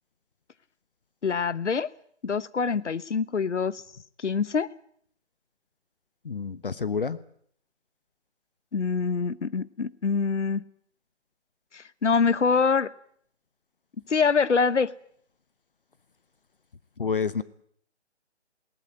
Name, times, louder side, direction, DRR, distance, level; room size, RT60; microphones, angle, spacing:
voice 1, 1.2-1.9 2.2-3.8 4.2-4.7 8.7-10.6 11.7-12.9 14.1-14.9, left 5 dB, 80° left, 19 dB, 1.1 m, -25 dB
voice 2, 6.2-7.2 17.0-17.4, left 5 dB, 50° left, 17 dB, 1.0 m, -28 dB
21.0 x 18.5 x 8.9 m, 0.64 s
figure-of-eight pair, 170°, 35 cm